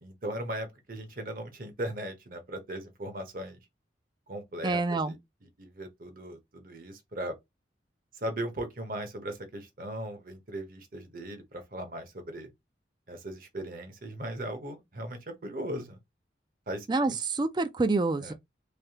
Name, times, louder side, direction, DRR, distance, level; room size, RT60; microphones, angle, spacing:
voice 1, 0.0-3.6 4.3-5.2 5.4-7.4 8.1-12.5 13.1-16.0 16.7-17.2 18.2-18.3, right 1 dB, 50° right, 0.9 m, -38 dB
voice 2, 4.6-5.1 16.9-18.3, right 3 dB, 25° right, 0.4 m, -27 dB
3.4 x 2.8 x 2.8 m
head